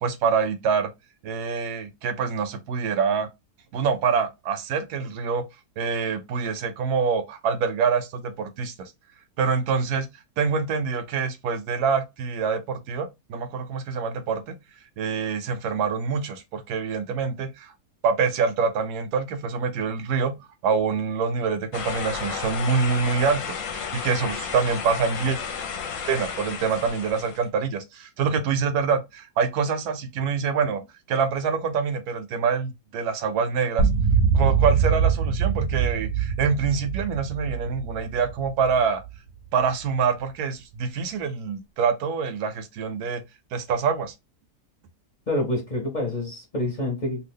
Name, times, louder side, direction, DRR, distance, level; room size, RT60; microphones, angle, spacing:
voice 1, 0.0-0.9 1.2-3.3 3.7-5.4 5.8-8.9 9.4-10.1 10.4-14.6 15.0-17.7 18.0-20.3 20.6-25.4 26.1-30.8 31.1-33.9 34.3-39.0 39.5-43.2 43.5-44.1, right 5 dB, 80° right, 1.1 m, -25 dB
sound 1, 21.7-27.5, left 6 dB, 65° left, 0.9 m, -32 dB
sound 2, 33.8-39.1, right 6 dB, 65° right, 0.8 m, -23 dB
voice 2, 45.3-47.3, left 1 dB, 35° left, 0.8 m, -27 dB
2.7 x 2.3 x 3.5 m
omnidirectional pair, 1.7 m